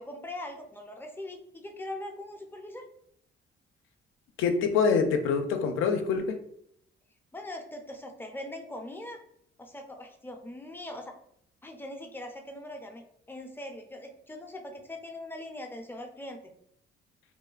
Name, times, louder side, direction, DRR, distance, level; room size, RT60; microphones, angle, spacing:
voice 1, 0.0-2.9 7.3-9.2 9.6-11.2 11.6-16.5, left 1 dB, 10° left, 3 dB, 0.4 m, -41 dB
voice 2, 4.4-6.4, left 5 dB, 85° left, 6 dB, 0.4 m, -25 dB
3.0 x 2.1 x 2.3 m, 0.71 s
cardioid pair, 90°, 20 cm